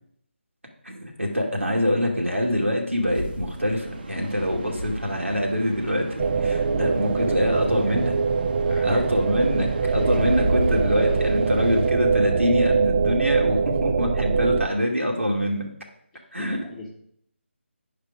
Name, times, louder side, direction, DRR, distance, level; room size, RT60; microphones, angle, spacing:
voice 1, 0.8-8.2 8.8-15.7 16.3-16.6, equal, 90° right, 0 dB, 2.4 m, -24 dB
sound 1, 2.9-11.9, right 1 dB, 50° right, 1.2 m, -33 dB
sound 2, 6.2-14.7, right 5 dB, 25° right, 0.4 m, -23 dB
voice 2, 7.7-8.1 8.7-9.0 16.4-16.9, left 1 dB, 10° left, -3 dB, 1.2 m, -38 dB
10.5 x 5.0 x 5.2 m, 0.70 s
figure-of-eight pair, 155°, 7 cm